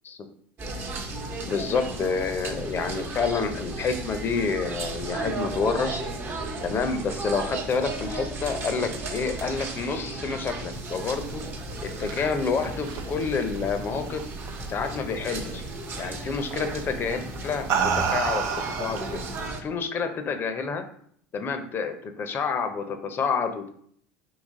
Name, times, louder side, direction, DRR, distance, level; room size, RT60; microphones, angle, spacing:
sound 1, 0.6-19.6, right 2 dB, 40° right, 0.9 m, -35 dB
voice 1, 1.5-6.0 6.6-11.4 12.0-14.2 14.7-15.6 16.0-19.2 19.6-20.8 21.3-23.7, left 5 dB, 40° left, 8 dB, 0.6 m, -28 dB
sound 2, 4.5-4.6 5.0-5.1 5.5-5.6 6.0-6.1 6.4-6.5 6.9-7.0 7.4-7.5 7.9-8.0 8.4-8.5 8.8-8.9 9.3-9.4 9.8-9.9 10.3-10.4 10.8-10.9 11.2-11.3 11.7-11.8 12.2-12.3 12.7-12.8 13.2-13.3 13.6-13.7 14.1-14.2 14.6-14.7 15.1-15.2 15.6-15.7 16.0-16.1 16.5-16.6 17.0-17.1 17.5-17.6 18.0-18.1 18.4-18.5 18.9-19.0 19.4-19.5, left 5 dB, 75° left, 0.8 m, -44 dB
sound 3, 11.6-14.5 14.8-15.3 16.5-16.7 17.4-19.5, right 6 dB, 60° right, 0.6 m, -29 dB
4.1 x 2.9 x 3.7 m, 0.62 s
hypercardioid pair, 80°, 6 cm